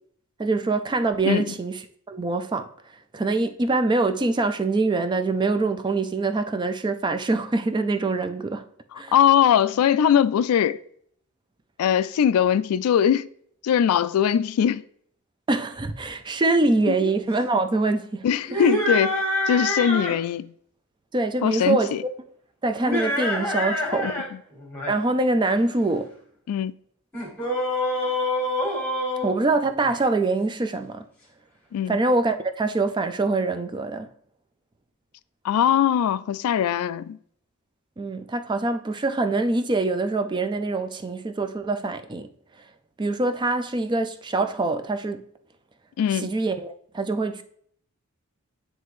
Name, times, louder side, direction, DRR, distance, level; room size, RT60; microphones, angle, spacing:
voice 1, 0.4-1.8 2.1-2.7 3.1-8.6 9.0-9.1 15.5-18.3 18.5-18.6 21.1-21.9 22.6-24.1 24.9-26.1 29.2-31.0 31.9-34.1 38.0-42.3 43.0-45.3 46.1-47.4, right 3 dB, 20° right, 0.4 m, -24 dB
voice 2, 1.2-1.5 9.1-10.8 11.8-13.3 13.6-14.8 18.2-19.2 19.5-20.5 21.4-22.0 24.0-24.2 26.5-26.7 31.7-32.0 35.4-37.2 46.0-46.3, left 9 dB, 85° left, 0.3 m, -21 dB
sound 1, 18.4-20.2 22.7-24.3 24.6-24.9 27.1-30.0, left 1 dB, 10° left, 1.5 m, -26 dB
9.3 x 3.3 x 3.1 m
head